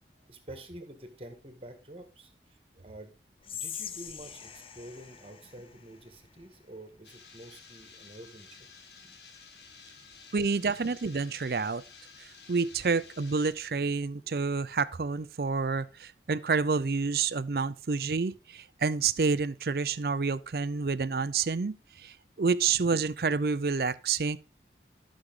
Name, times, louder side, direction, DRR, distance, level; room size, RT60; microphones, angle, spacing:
voice 1, 0.3-3.2 3.5-8.7 9.0-9.2 10.0-10.1 10.5-10.8, right 1 dB, 30° right, 1.8 m, -48 dB
Whispering, 3.4-6.6, left 8 dB, 30° left, 0.7 m, -43 dB
sound 1, 7.0-13.5, left 5 dB, 75° left, 1.9 m, -53 dB
voice 2, 10.3-11.8 12.5-24.4, right 4 dB, 55° right, 0.5 m, -29 dB
13.0 x 6.4 x 3.7 m
head